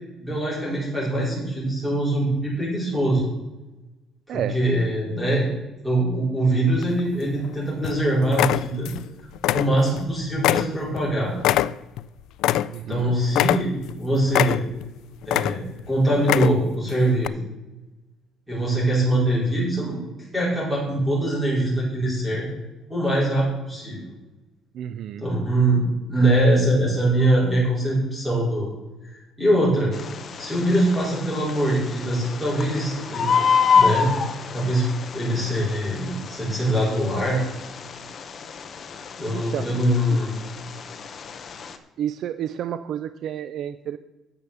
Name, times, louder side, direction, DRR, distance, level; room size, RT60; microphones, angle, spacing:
voice 1, 0.2-3.3 4.3-5.5 5.8-8.9 9.5-11.3 12.9-13.7 14.0-14.6 15.2-17.4 18.5-20.0 20.3-22.4 22.9-24.0 25.2-28.7 29.4-29.9 30.4-33.5 33.7-34.1 34.5-34.8 35.1-37.4 39.2-40.3, right 1 dB, 5° right, -7 dB, 4.8 m, -23 dB
voice 2, 4.3-4.6 12.7-13.2 24.7-25.3 39.3-39.7 40.1-40.2 42.0-44.0, right 10 dB, 50° right, 12 dB, 0.4 m, -30 dB
sound 1, 6.8-7.5 7.8-8.0 8.3-9.1 9.4-10.1 10.4-13.0 13.3-14.0 14.3-14.9 15.2-15.8 16.2-16.8 17.2-17.3, left 13 dB, 70° left, 0.3 m, -23 dB
Bird, 29.9-41.8, left 6 dB, 35° left, 0.8 m, -27 dB
9.9 x 6.8 x 7.0 m, 1.0 s
cardioid pair, 165°, 0 cm